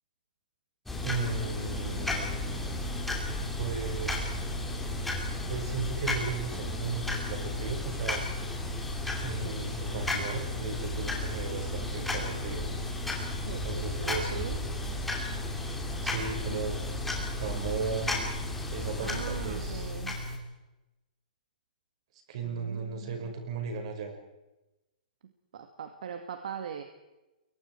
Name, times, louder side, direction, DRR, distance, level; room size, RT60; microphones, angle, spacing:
sound 1, 0.9-20.4, left 2 dB, 5° left, 2.7 m, -33 dB
voice 1, 1.0-2.9 3.2-4.4 5.5-8.2 9.2-12.7 13.6-14.6 16.0-16.8 17.4-18.2 18.7-19.9 22.3-24.2, right 5 dB, 40° right, 4 dB, 5.5 m, -36 dB
voice 2, 13.4-14.6 19.0-20.2 22.4-23.3 25.5-26.8, right 8 dB, 60° right, 6 dB, 2.2 m, -41 dB
29.5 x 23.0 x 4.7 m, 1.0 s
hypercardioid pair, 175°, 5 cm